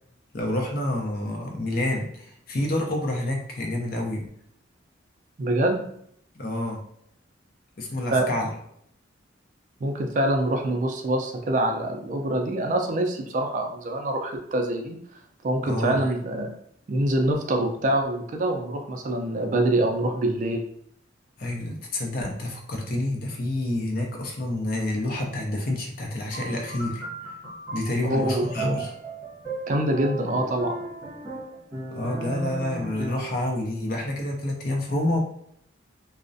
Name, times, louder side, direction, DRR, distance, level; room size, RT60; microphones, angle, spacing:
voice 1, 0.3-4.3 6.3-6.8 7.8-8.5 15.6-16.0 21.4-27.0 27.7-28.9 31.9-35.2, left 1 dB, 50° left, 1 dB, 0.5 m, -28 dB
voice 2, 5.4-5.8 8.1-8.3 9.8-15.0 15.4-16.5 16.9-20.7 28.0-28.9 29.7-30.8, right 1 dB, 40° right, 3 dB, 0.3 m, -25 dB
sound 1, 26.3-33.4, right 2 dB, 10° right, 1.1 m, -35 dB
2.4 x 2.0 x 2.5 m, 0.69 s
head